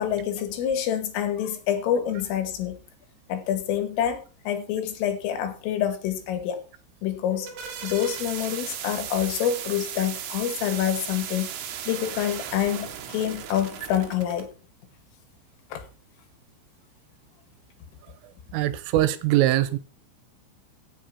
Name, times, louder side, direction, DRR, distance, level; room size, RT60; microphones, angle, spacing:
voice 1, 0.0-2.8 3.3-6.6 7.0-7.5 7.8-11.5 11.9-14.5 15.7-15.8, left 10 dB, 85° left, 4.6 m, -27 dB
sound 1, 7.2-14.5, right 9 dB, 65° right, 3.6 m, -36 dB
voice 2, 18.5-19.8, right 14 dB, 85° right, 3.6 m, -22 dB
16.0 x 7.4 x 5.9 m
omnidirectional pair, 5.7 m